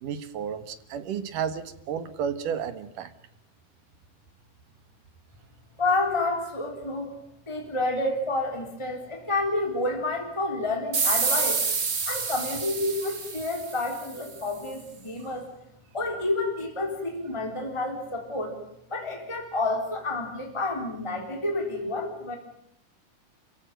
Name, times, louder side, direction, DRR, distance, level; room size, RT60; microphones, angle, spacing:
voice 1, 0.0-3.1, right 7 dB, 85° right, 11 dB, 3.2 m, -32 dB
voice 2, 5.8-7.1 7.5-11.6 12.1-15.5 15.9-18.6 18.9-22.4, left 2 dB, 10° left, 2 dB, 3.6 m, -29 dB
sound 1, 10.9-14.2, right 5 dB, 45° right, 0.8 m, -28 dB
29.0 x 15.5 x 9.2 m, 0.73 s
omnidirectional pair, 3.6 m